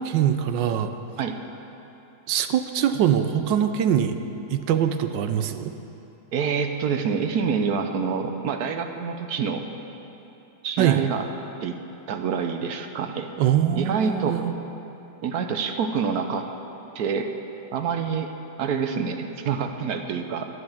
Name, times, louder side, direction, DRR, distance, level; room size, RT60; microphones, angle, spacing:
voice 1, 0.1-0.9 2.3-4.1 4.5-5.7 10.8-11.0 13.4-14.5, right 10 dB, 80° right, 9 dB, 1.3 m, -23 dB
voice 2, 6.3-9.6 10.6-11.3 11.6-11.7 12.1-13.3 13.7-14.4 15.2-16.4 16.9-17.3 17.7-18.3 18.6-20.5, right 6 dB, 65° right, 6 dB, 1.1 m, -26 dB
10.5 x 9.7 x 7.1 m, 2.9 s
omnidirectional pair, 2.0 m